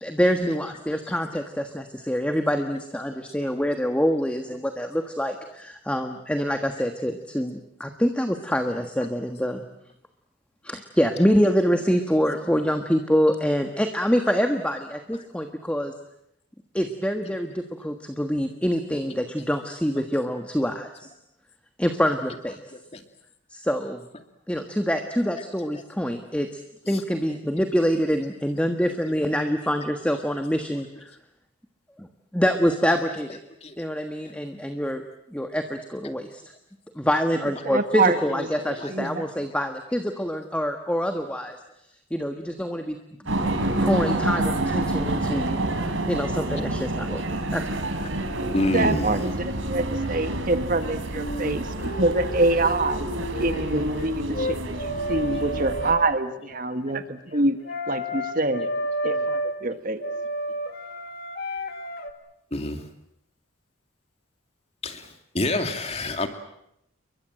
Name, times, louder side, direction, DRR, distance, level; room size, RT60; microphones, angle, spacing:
voice 1, 0.0-9.6 10.6-15.9 16.7-21.1 21.8-22.6 23.5-24.0 24.5-26.6 26.9-31.1 32.0-32.1 32.3-33.4 33.8-35.0 35.3-36.4 36.9-41.6 42.1-43.0 43.3-47.2 47.5-47.6, equal, 5° left, 6 dB, 1.4 m, -25 dB
voice 2, 8.7-9.1 22.3-22.4 22.9-23.0 25.4-25.5 25.7-25.8 26.9-27.0 33.6-33.7 37.9-38.3 38.7-38.9 39.3-39.6 44.7-44.8 46.6-46.7 48.5-49.3 50.0-50.1 50.5-50.9 51.5-51.9 54.1-54.2 57.3-57.4 59.0-59.2 62.5-62.8 64.8-65.1 65.3-66.3, left 1 dB, 30° left, 6 dB, 2.5 m, -30 dB
voice 3, 37.6-39.3 48.7-57.6 57.9-58.7 59.0-60.0, right 2 dB, 40° right, 9 dB, 1.5 m, -26 dB
sound 1, 43.3-55.9, right 1 dB, 75° right, 3.9 m, -28 dB
sound 2, 51.1-53.0 53.3-56.2 57.6-59.6 60.0-62.1, equal, 50° left, 2.2 m, -31 dB
29.5 x 23.0 x 7.7 m, 0.78 s
head